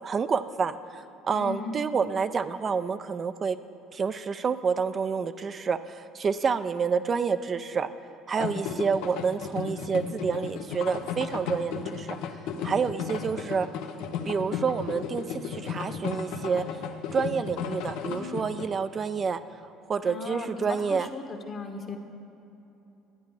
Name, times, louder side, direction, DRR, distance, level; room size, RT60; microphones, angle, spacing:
voice 1, 0.0-3.6 3.9-7.9 8.3-12.2 12.6-13.7 14.3-16.6 17.1-19.4 19.9-21.1, right 5 dB, 35° right, 10 dB, 0.4 m, -28 dB
voice 2, 1.3-1.7 20.0-22.0, left 4 dB, 45° left, 4 dB, 1.2 m, -37 dB
sound 1, 8.4-18.7, left 6 dB, 75° left, 0.7 m, -35 dB
12.0 x 9.2 x 4.9 m, 2.9 s
supercardioid pair, 90°, 0 cm